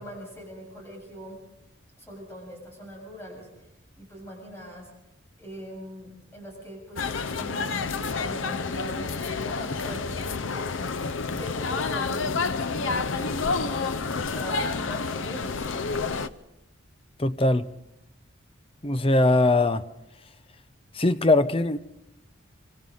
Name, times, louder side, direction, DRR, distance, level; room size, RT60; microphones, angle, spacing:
voice 1, 0.0-1.4 2.0-3.7 4.0-4.9 5.4-10.7 11.4-16.2, equal, 10° left, 7.4 m, -41 dB
sound 1, 7.0-16.3, left 4 dB, 80° left, 0.6 m, -29 dB
voice 2, 17.2-17.7 18.8-19.8 20.9-21.8, left 2 dB, 25° left, 0.7 m, -21 dB
26.5 x 25.5 x 4.0 m
head